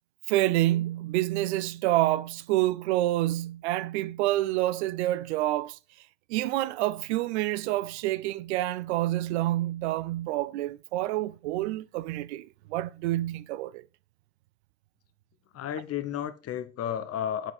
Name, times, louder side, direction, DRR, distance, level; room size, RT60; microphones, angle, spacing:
voice 1, 0.3-5.8 6.3-13.8, right 16 dB, 75° right, 0.5 m, -28 dB
voice 2, 15.5-17.5, left 9 dB, 45° left, 1.0 m, -32 dB
7.9 x 4.6 x 4.1 m
hypercardioid pair, 65°, 34 cm